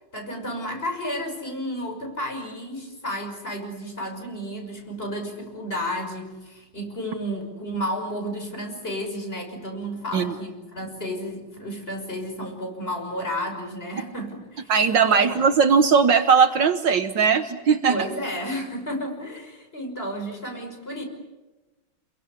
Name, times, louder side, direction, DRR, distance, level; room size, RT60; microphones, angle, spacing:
voice 1, 0.1-14.7 15.0-15.3 17.9-21.0, equal, 25° left, 3 dB, 6.0 m, -32 dB
voice 2, 14.7-18.0, right 6 dB, 65° right, 10 dB, 1.7 m, -19 dB
29.5 x 22.5 x 8.5 m, 1.1 s
omnidirectional pair, 2.2 m